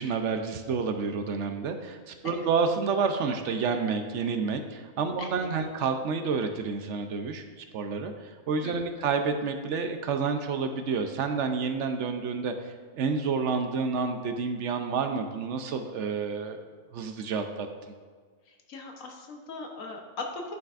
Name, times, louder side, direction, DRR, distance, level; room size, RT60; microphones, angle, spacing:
voice 1, 0.0-7.4 7.7-12.5 12.9-16.6 16.9-17.7, right 5 dB, 65° right, 7 dB, 0.8 m, -29 dB
voice 2, 5.2-5.7 8.6-9.1 18.4-20.5, left 3 dB, 70° left, 2 dB, 1.3 m, -40 dB
10.5 x 5.6 x 2.5 m, 1.5 s
omnidirectional pair, 1.4 m